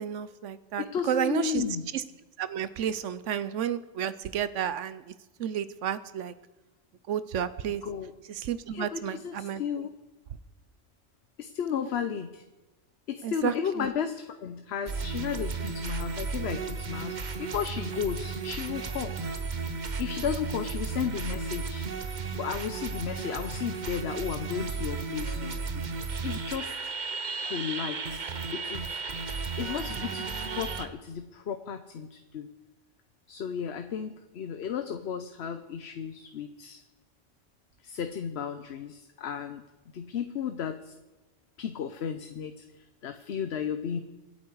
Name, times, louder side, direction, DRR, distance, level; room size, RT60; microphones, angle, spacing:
voice 1, 0.0-1.6 1.9-2.0 2.4-5.0 5.4-6.3 7.1-7.8 8.4-9.6 13.2-13.9, right 9 dB, 90° right, 15 dB, 1.1 m, -31 dB
voice 2, 0.8-1.9 7.8-8.1 8.7-9.9 11.4-12.4 13.1-19.1 20.0-21.9 22.3-26.7 27.4-29.0 29.6-32.5 33.3-36.8 37.8-39.6 39.9-40.9 41.6-44.0, left 8 dB, 65° left, 9 dB, 1.0 m, -34 dB
sound 1, 14.9-30.9, right 4 dB, 45° right, 1.0 m, -34 dB
24.5 x 8.6 x 4.8 m, 1.1 s
omnidirectional pair, 1.2 m